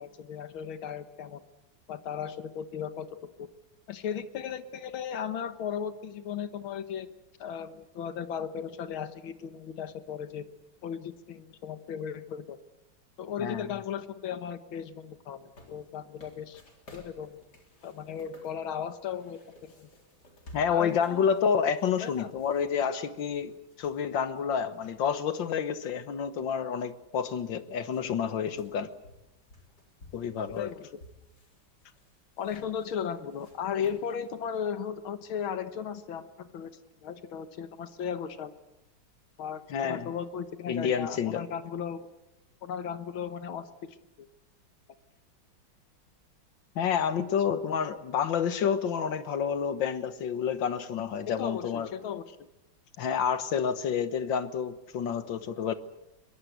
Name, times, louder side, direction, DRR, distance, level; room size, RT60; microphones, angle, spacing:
voice 1, 0.0-1.4 1.9-3.5 3.9-7.1 7.4-10.5 10.8-12.6 13.2-16.6 16.9-17.4 17.8-19.9 20.7-21.3 22.0-22.3 30.6-30.9 32.4-36.7 37.0-38.5 39.4-42.1 42.6-44.3 51.3-52.5, left 8 dB, 85° left, 2.1 m, -36 dB
voice 2, 13.4-13.7 20.5-23.5 23.8-28.9 30.1-30.7 39.7-40.1 40.7-41.4 46.8-51.9 53.0-55.7, left 7 dB, 70° left, 1.9 m, -29 dB
sound 1, 15.3-25.4 25.8-25.9 26.8-26.9 27.1-34.6, left 1 dB, 55° left, 4.3 m, -56 dB
22.5 x 20.5 x 8.1 m
omnidirectional pair, 2.2 m